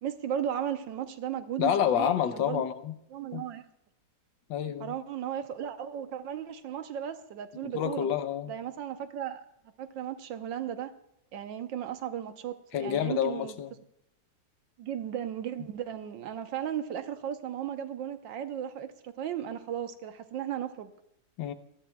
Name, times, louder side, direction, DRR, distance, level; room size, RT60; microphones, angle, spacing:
voice 1, 0.0-2.6 3.1-3.6 4.8-8.1 8.5-9.4 9.8-10.9 11.3-13.6 14.8-20.9, right 9 dB, 85° right, 9 dB, 1.6 m, -35 dB
voice 2, 1.6-2.9 3.3-3.4 4.5-4.9 7.6-8.5 12.7-13.7 21.4-21.5, left 9 dB, 85° left, 11 dB, 1.5 m, -28 dB
20.0 x 13.5 x 2.3 m, 0.78 s
omnidirectional pair, 2.0 m